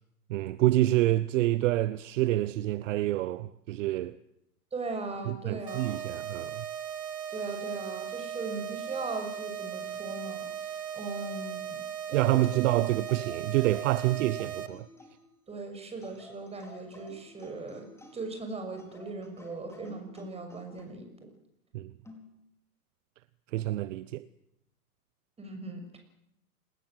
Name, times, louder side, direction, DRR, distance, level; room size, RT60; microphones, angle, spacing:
voice 1, 0.3-4.2 5.3-6.6 12.1-14.9 21.7-21.9 23.5-24.2, right 15 dB, 55° right, 1.0 m, -27 dB
voice 2, 4.7-6.0 7.3-11.8 12.1-12.7 15.5-17.9 18.1-21.3 25.4-26.0, right 3 dB, 15° right, 6.4 m, -39 dB
sound 1, 5.7-14.7, right 9 dB, 85° right, 2.3 m, -38 dB
sound 2, 13.1-15.3 16.0-18.4 18.8-21.0 22.0-22.3, left 1 dB, 5° left, 4.6 m, -52 dB
28.0 x 20.0 x 7.8 m
hypercardioid pair, 130°, 45 cm